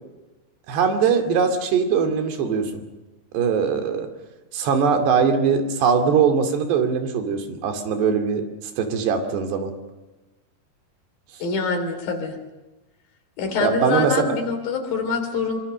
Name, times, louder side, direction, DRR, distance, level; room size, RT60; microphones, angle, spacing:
voice 1, 0.7-2.8 3.3-4.1 4.5-8.5 8.8-9.7 13.6-14.4, right 6 dB, 80° right, 7 dB, 4.6 m, -21 dB
voice 2, 11.4-12.4 13.4-15.6, left 4 dB, 60° left, 6 dB, 4.6 m, -25 dB
25.0 x 25.0 x 6.6 m, 1.1 s
omnidirectional pair, 4.8 m